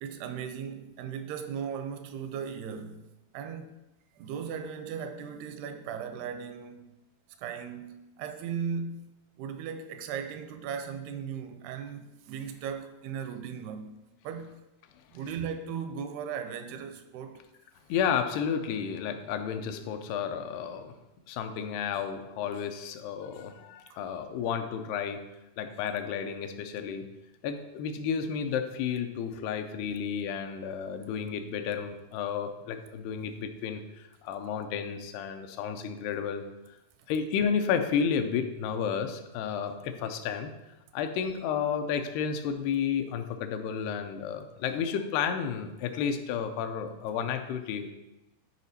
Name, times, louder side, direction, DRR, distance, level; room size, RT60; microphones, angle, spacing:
voice 1, 0.0-3.1 3.3-3.8 4.2-6.9 7.4-9.0 9.4-14.0 14.2-14.6 15.1-17.4 23.9-24.0, right 7 dB, 85° right, 2.5 m, -37 dB
voice 2, 17.9-20.9 21.3-25.2 25.6-27.1 27.4-36.4 37.1-40.5 40.9-47.9, left 7 dB, 85° left, 2.6 m, -32 dB
10.5 x 5.0 x 4.1 m
omnidirectional pair, 4.7 m